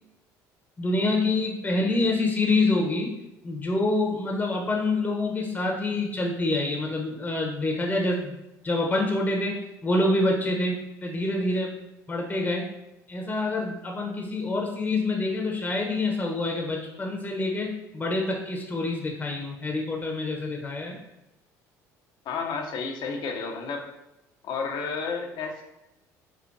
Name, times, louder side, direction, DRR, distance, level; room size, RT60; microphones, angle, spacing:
voice 1, 0.8-3.1 3.4-8.4 8.6-11.8 12.1-12.6 13.1-21.0, left 2 dB, 20° left, -1 dB, 0.8 m, -26 dB
voice 2, 22.3-23.9 24.4-25.6, left 5 dB, 65° left, 2 dB, 0.7 m, -31 dB
4.7 x 2.8 x 2.6 m, 0.93 s
hypercardioid pair, 70°, 8 cm